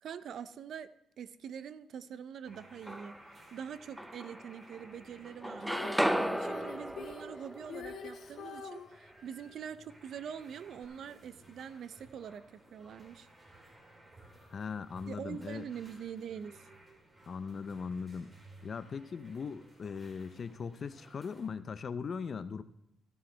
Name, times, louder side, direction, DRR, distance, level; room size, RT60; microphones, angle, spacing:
voice 1, 0.0-3.2 3.5-13.3 15.0-16.7, right 8 dB, 65° right, 14 dB, 0.6 m, -44 dB
sound 1, 2.4-21.5, right 1 dB, 25° right, 3.6 m, -58 dB
sound 2, 2.5-3.4 4.0-5.0 5.2-9.2, equal, 5° right, 0.5 m, -36 dB
Female singing, 5.6-8.9 10.8-10.9, left 6 dB, 65° left, 1.5 m, -45 dB
voice 2, 14.5-15.7 17.3-18.3 18.6-22.6, left 5 dB, 45° left, 13 dB, 0.6 m, -39 dB
14.0 x 12.5 x 3.4 m, 0.87 s
cardioid pair, 90°, 0 cm